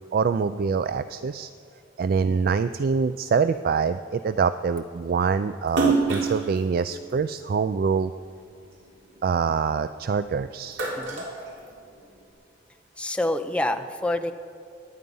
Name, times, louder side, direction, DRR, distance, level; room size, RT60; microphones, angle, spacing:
voice 1, 0.1-1.5 2.0-8.1 9.2-10.9, right 5 dB, 50° right, 12 dB, 0.3 m, -25 dB
Splash splatter, 5.7-8.2 8.7-10.1 10.5-12.2, right 3 dB, 70° right, 3.3 m, -28 dB
voice 2, 13.0-14.3, left 1 dB, 5° left, 6 dB, 0.7 m, -27 dB
24.5 x 9.8 x 5.5 m, 2.5 s
head